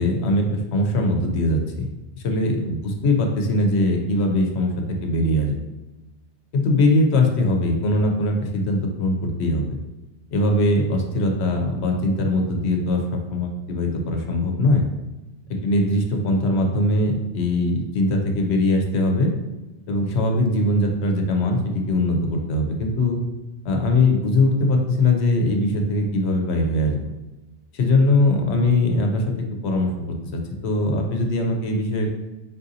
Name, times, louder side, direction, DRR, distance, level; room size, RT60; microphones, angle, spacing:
voice 1, 0.0-1.9 2.2-4.7 5.0-5.5 6.5-9.8 10.3-13.0 13.3-14.8 15.6-19.3 19.9-23.2 23.6-27.0 27.7-29.3 29.6-32.1, left 1 dB, 80° left, 3 dB, 1.0 m, -21 dB
4.1 x 3.8 x 2.7 m, 1.1 s
omnidirectional pair, 1.1 m